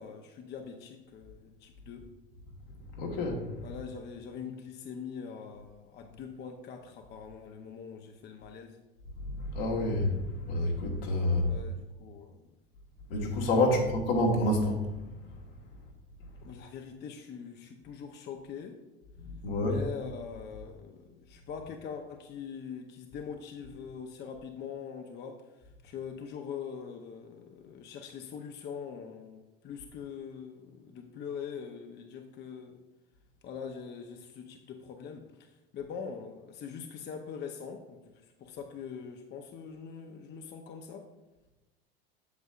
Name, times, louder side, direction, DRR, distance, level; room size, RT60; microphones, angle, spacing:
voice 1, 0.0-2.1 3.6-8.8 11.4-12.5 13.7-13.9 16.4-18.8 19.6-25.4 25.8-32.8 33.4-35.3 35.7-38.0 38.4-41.1, left 6 dB, 35° left, 5 dB, 0.7 m, -43 dB
voice 2, 3.0-3.4 9.4-10.2 10.4-11.5 13.1-14.8 19.4-19.8, left 1 dB, 75° left, 0 dB, 1.5 m, -27 dB
8.1 x 6.4 x 2.4 m, 1.0 s
hypercardioid pair, 85°, 29 cm